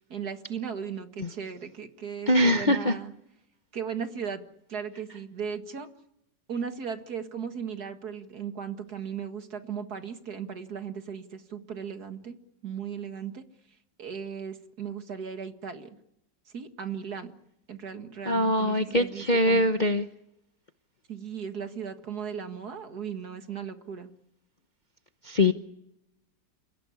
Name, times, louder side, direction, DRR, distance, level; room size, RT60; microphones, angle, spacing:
voice 1, 0.1-3.1 3.7-4.4 4.7-5.9 6.5-12.3 12.6-13.4 14.0-16.0 16.5-17.3 17.7-19.7 21.1-24.1, right 7 dB, 60° right, 7 dB, 2.3 m, -36 dB
voice 2, 2.3-2.9 18.3-20.1 25.2-25.5, left 1 dB, 35° left, 7 dB, 0.9 m, -23 dB
29.0 x 16.0 x 9.8 m, 0.81 s
omnidirectional pair, 2.0 m